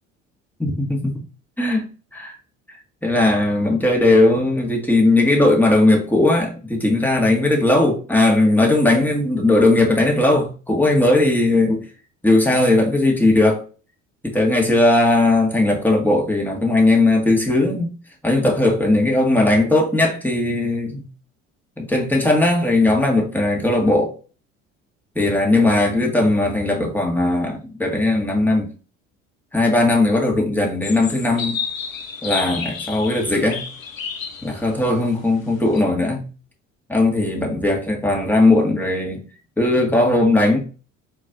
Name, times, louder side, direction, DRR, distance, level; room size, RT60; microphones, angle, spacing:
voice 1, 0.6-1.2 1.6-1.9 2.1-2.4 3.0-11.9 12.2-13.6 14.2-17.9 18.2-21.1 21.8-24.1 25.2-28.7 29.5-31.6 32.2-33.6 34.4-36.2 36.9-39.2 39.6-40.6, left 2 dB, 5° left, 1.8 m, -18 dB
sound 1, 30.8-35.8, left 6 dB, 90° left, 0.6 m, -31 dB
4.6 x 4.4 x 2.6 m
figure-of-eight pair, 55°, 39 cm